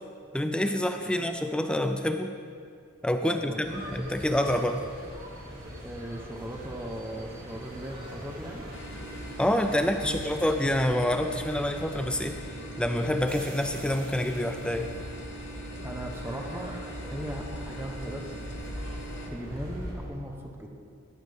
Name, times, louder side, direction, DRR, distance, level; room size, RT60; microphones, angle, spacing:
voice 1, 0.3-2.3 3.0-4.8 9.4-12.4 12.8-14.9, left 1 dB, 5° left, 6 dB, 0.4 m, -27 dB
voice 2, 3.2-3.9 5.8-8.7 9.7-10.6 15.8-16.7 17.1-18.4 19.3-20.7, equal, 10° right, 1 dB, 1.1 m, -38 dB
sound 1, 3.6-19.9, right 1 dB, 45° right, 2.1 m, -45 dB
sound 2, 3.7-20.1, equal, 20° left, 1.4 m, -43 dB
sound 3, 8.7-19.3, right 1 dB, 60° left, 1.1 m, -42 dB
13.5 x 10.5 x 3.6 m, 2.3 s
head